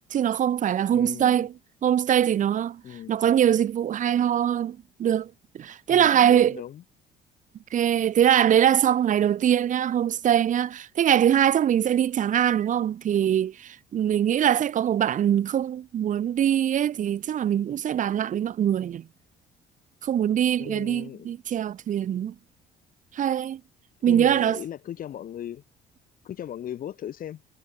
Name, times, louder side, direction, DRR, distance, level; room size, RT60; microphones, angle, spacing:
voice 1, 0.1-1.5 1.8-2.8 3.1-6.6 7.7-19.0 20.0-22.3 23.1-23.6 24.0-24.6, right 10 dB, 50° right, 1.3 m, -23 dB
voice 2, 0.9-1.5 2.8-3.1 5.9-6.8 20.6-21.3 24.1-25.6 26.2-27.4, left 10 dB, 55° left, 3.9 m, -37 dB
cardioid pair, 110°, 17 cm